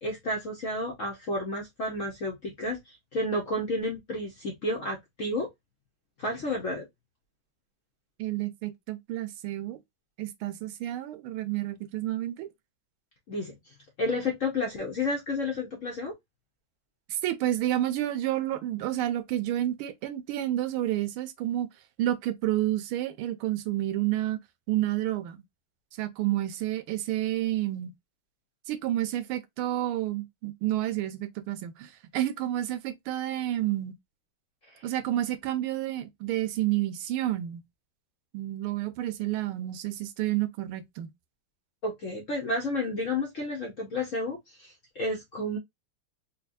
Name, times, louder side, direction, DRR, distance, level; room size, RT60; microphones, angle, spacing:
voice 1, 0.0-5.5 6.2-6.8 13.3-13.6 14.0-16.1 34.7-34.8 41.8-45.6, left 1 dB, 60° left, 0.8 m, -31 dB
voice 2, 8.2-9.8 10.2-12.5 17.1-21.7 22.0-24.4 24.7-25.4 26.0-27.9 28.7-33.9 34.8-37.6 38.3-41.1, right 14 dB, 90° right, 1.5 m, -30 dB
4.3 x 2.3 x 2.5 m
omnidirectional pair, 2.4 m